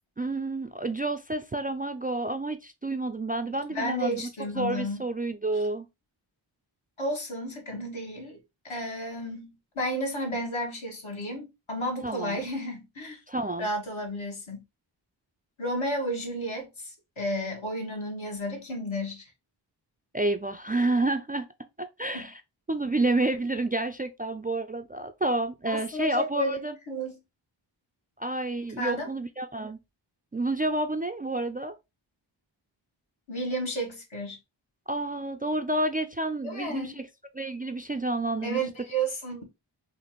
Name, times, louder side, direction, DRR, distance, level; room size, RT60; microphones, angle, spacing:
voice 1, 0.2-4.3 4.6-5.9 12.0-12.4 13.3-13.7 20.1-21.5 21.8-22.4 22.7-26.8 28.2-29.8 30.3-31.7 34.9-37.1 37.3-38.6, right 2 dB, 20° right, 0.3 m, -29 dB
voice 2, 3.7-5.0 7.0-8.4 8.6-13.2 13.6-14.6 15.6-19.3 22.1-22.3 25.7-27.2 28.8-29.1 33.3-34.4 36.4-36.9 38.4-39.4, equal, 75° left, 1.6 m, -32 dB
4.1 x 2.5 x 3.0 m
cardioid pair, 45°, 48 cm